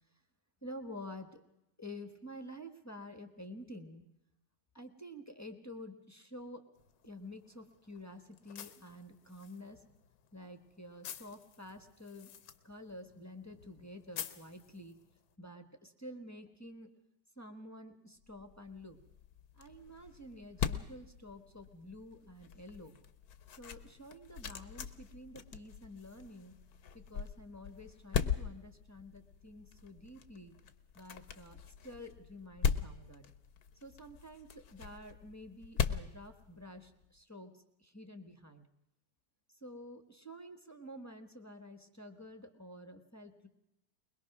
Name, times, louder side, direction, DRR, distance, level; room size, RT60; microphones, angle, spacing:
voice 1, 0.6-1.4 1.8-4.0 4.7-6.6 7.0-9.8 10.3-12.3 12.6-14.9 15.4-16.9 17.4-19.0 19.6-22.9 23.6-26.5 26.9-30.5 30.9-31.6 31.8-33.2 33.8-37.5 37.8-38.6 39.6-43.5, left 1 dB, 10° left, 5 dB, 1.0 m, -49 dB
sound 1, 6.7-15.3, left 9 dB, 85° left, 1.8 m, -52 dB
sound 2, 18.3-37.0, left 7 dB, 60° left, 1.3 m, -40 dB
22.0 x 21.5 x 6.0 m, 0.87 s
omnidirectional pair, 2.1 m